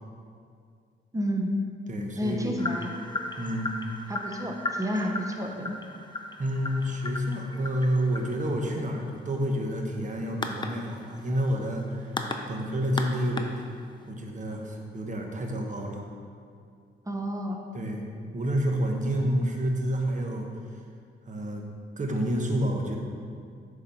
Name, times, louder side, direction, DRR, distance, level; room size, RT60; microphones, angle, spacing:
voice 1, 1.1-1.7 2.2-2.9 4.1-5.8 17.1-17.6, equal, 15° right, 2 dB, 1.0 m, -30 dB
voice 2, 1.9-2.6 3.4-3.7 6.4-12.2 12.5-13.6 14.1-16.1 17.7-18.0 18.3-20.5 21.3-21.7 22.0-23.0, equal, 40° right, 1 dB, 1.1 m, -29 dB
sound 1, 2.6-14.1, left 2 dB, 20° left, 0.6 m, -37 dB
6.9 x 4.8 x 5.5 m, 2.3 s
cardioid pair, 85°, 20 cm